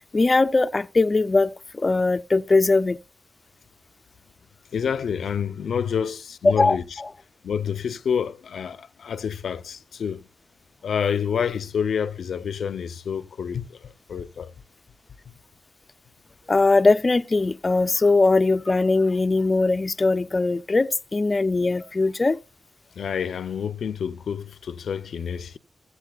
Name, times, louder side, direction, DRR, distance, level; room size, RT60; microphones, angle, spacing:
voice 1, 0.1-1.5 1.8-3.0 6.4-6.8 16.5-22.4, left 3 dB, 30° left, 0.4 m, -20 dB
voice 2, 4.7-7.0 7.4-10.3 10.8-14.5 23.0-25.6, left 7 dB, 85° left, 0.5 m, -28 dB
15.0 x 8.2 x 2.3 m
wide cardioid pair, 110°, 0 cm